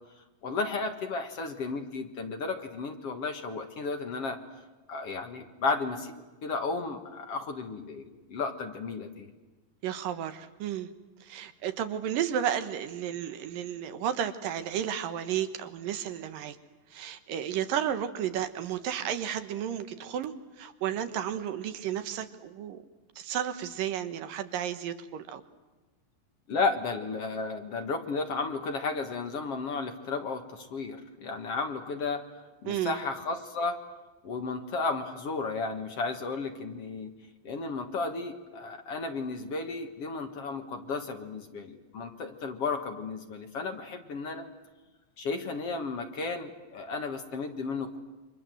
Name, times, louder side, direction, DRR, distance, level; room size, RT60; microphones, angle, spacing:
voice 1, 0.4-4.4 4.9-9.3 26.5-32.2 32.6-33.8 34.2-37.1 37.4-44.5 45.2-48.0, left 4 dB, 50° left, 5 dB, 2.2 m, -33 dB
voice 2, 9.8-10.9 11.2-16.6 16.9-22.8 23.2-25.4 32.7-33.0, right 9 dB, 80° right, 10 dB, 2.9 m, -33 dB
29.0 x 25.0 x 7.8 m, 1.2 s
omnidirectional pair, 4.0 m